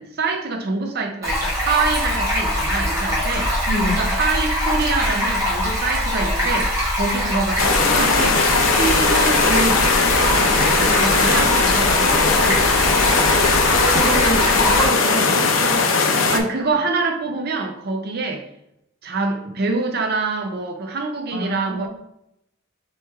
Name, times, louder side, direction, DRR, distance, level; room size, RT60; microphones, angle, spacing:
voice 1, 0.0-3.5 4.0-8.4 8.7-12.6 16.3-18.5 19.0-21.9, right 3 dB, 50° right, 3 dB, 0.5 m, -25 dB
Stream, 1.2-14.8, equal, 15° right, 1.2 m, -22 dB
voice 2, 3.7-4.0 13.9-15.8 21.3-21.9, equal, 85° right, -1 dB, 1.3 m, -26 dB
sound 1, 7.6-16.4, left 4 dB, 65° left, 0.6 m, -18 dB
4.3 x 3.1 x 3.4 m, 0.78 s
head